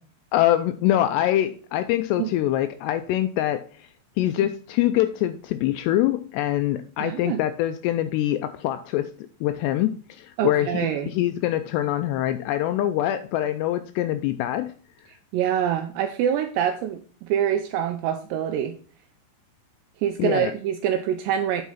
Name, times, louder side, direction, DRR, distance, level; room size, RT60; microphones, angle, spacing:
voice 1, 0.3-3.9 4.2-9.1 9.4-14.7 20.2-20.5, left 13 dB, 85° left, 10 dB, 2.5 m, -24 dB
voice 2, 7.0-7.4 10.4-11.1 15.3-18.7 20.0-21.6, right 9 dB, 80° right, 6 dB, 2.6 m, -25 dB
8.3 x 4.7 x 5.5 m, 0.42 s
omnidirectional pair, 5.2 m